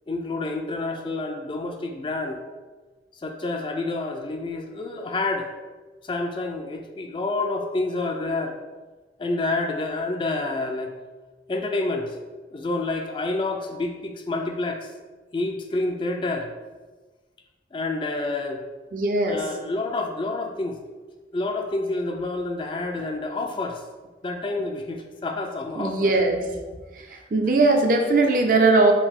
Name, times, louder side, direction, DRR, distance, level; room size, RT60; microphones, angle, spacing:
voice 1, 0.1-2.4 3.2-5.5 6.0-8.6 9.2-10.9 11.5-12.2 12.5-14.9 15.3-16.5 17.7-18.6 19.3-20.8 21.3-23.8 24.2-26.1 27.1-27.5, left 2 dB, 30° left, 4 dB, 0.3 m, -28 dB
voice 2, 18.9-19.4 25.8-26.4 27.3-28.9, right 3 dB, 50° right, 3 dB, 0.5 m, -19 dB
5.0 x 2.6 x 3.6 m, 1.3 s
head